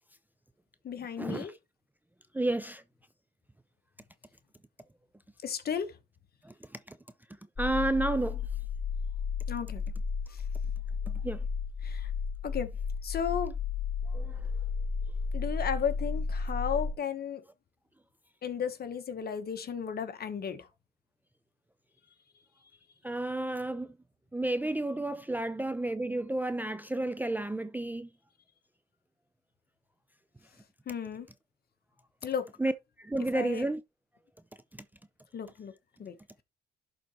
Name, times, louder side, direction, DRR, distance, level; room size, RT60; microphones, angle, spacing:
voice 1, 0.8-1.5 5.4-6.0 9.5-9.8 10.3-10.4 11.8-12.1 12.4-12.8 13.0-13.5 15.3-17.4 18.4-20.7 30.9-31.3 32.2-32.5 33.3-33.7 35.3-35.7 36.0-36.1, left 7 dB, 50° left, 1.2 m, -34 dB
voice 2, 2.3-2.8 6.4-6.5 7.6-8.4 11.2-11.4 14.1-14.4 23.0-23.9 24.3-28.1 32.6-32.7 33.0-33.8, right 2 dB, 10° right, 0.4 m, -31 dB
sound 1, 7.6-16.9, left 5 dB, 25° left, 3.8 m, -33 dB
11.5 x 4.0 x 3.1 m
cardioid pair, 90°, 20 cm